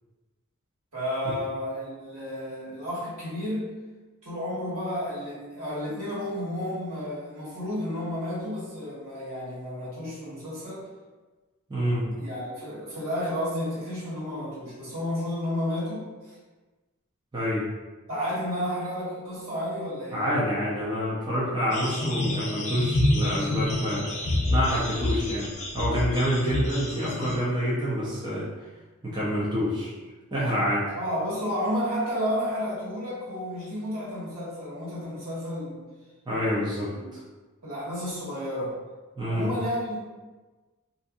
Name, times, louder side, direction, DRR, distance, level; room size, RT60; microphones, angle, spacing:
voice 1, 0.9-3.7 4.2-10.9 11.9-16.4 18.1-20.3 30.9-35.8 36.9-37.1 37.6-38.8 39.2-40.0, equal, 80° right, -10 dB, 1.5 m, -31 dB
voice 2, 11.7-12.0 17.3-17.7 20.1-24.1 24.5-28.5 29.0-29.9 30.3-30.9 36.3-37.2 39.2-39.5, equal, 20° right, -8 dB, 0.5 m, -27 dB
sound 1, 21.7-27.4, left 1 dB, 35° left, 0.4 m, -27 dB
2.6 x 2.6 x 2.3 m, 1.3 s
head